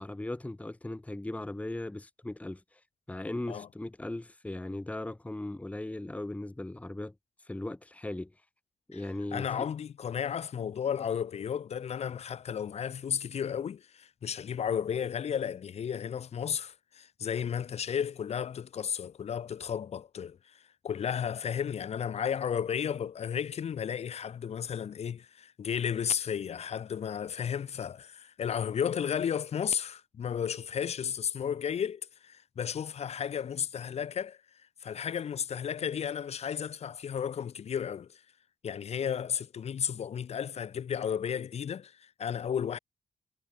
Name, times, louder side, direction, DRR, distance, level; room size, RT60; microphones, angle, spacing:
voice 1, 0.0-2.8 3.1-7.1 7.5-8.3 8.9-9.5, left 1 dB, 10° left, 1.9 m, -38 dB
voice 2, 9.3-20.4 20.8-34.4 34.8-38.1 38.6-42.8, left 8 dB, 70° left, 3.3 m, -33 dB
cardioid pair, 90°, 11 cm